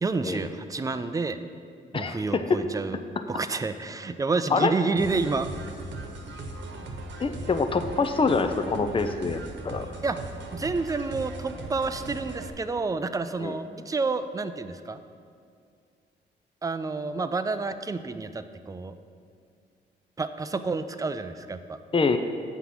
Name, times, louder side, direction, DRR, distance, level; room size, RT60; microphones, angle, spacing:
voice 1, 0.0-1.4 1.9-3.0 3.3-5.5 10.0-15.0 16.6-18.9 20.2-21.8, right 3 dB, 15° right, 10 dB, 0.5 m, -29 dB
voice 2, 1.9-2.6 4.5-4.7 7.2-9.9 13.4-13.5 21.9-22.2, left 4 dB, 25° left, 9 dB, 0.6 m, -25 dB
sound 1, 5.0-12.5, right 2 dB, 70° right, 1.2 m, -38 dB
8.2 x 5.9 x 5.8 m, 2.3 s
cardioid pair, 75°, 20 cm